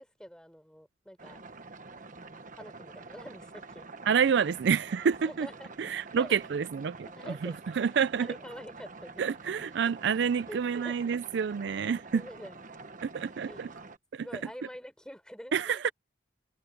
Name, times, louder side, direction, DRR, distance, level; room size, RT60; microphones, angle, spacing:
voice 1, 0.0-1.4 2.6-3.9 5.0-6.3 7.0-9.2 10.5-11.0 12.0-12.6 13.5-13.6 14.2-15.9, equal, 5° left, 4.8 m, -46 dB
sound 1, 1.2-14.0, right 3 dB, 45° right, 1.3 m, -47 dB
voice 2, 4.1-5.5 5.8-8.3 9.2-12.3 13.0-13.7 14.1-14.3 15.5-15.9, right 6 dB, 65° right, 0.4 m, -28 dB
head